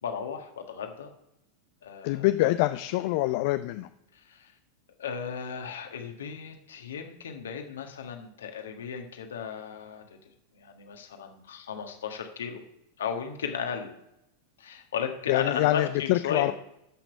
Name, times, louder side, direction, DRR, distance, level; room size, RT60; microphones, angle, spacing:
voice 1, 0.0-1.1 1.8-2.3 4.1-4.5 5.0-10.2 10.5-12.6 13.0-14.0 14.6-16.5, left 7 dB, 70° left, 4 dB, 1.5 m, -35 dB
voice 2, 2.0-3.9 15.3-16.5, left 17 dB, 55° left, 11 dB, 0.4 m, -25 dB
13.0 x 6.0 x 5.2 m, 0.84 s
figure-of-eight pair, 90°, 0 cm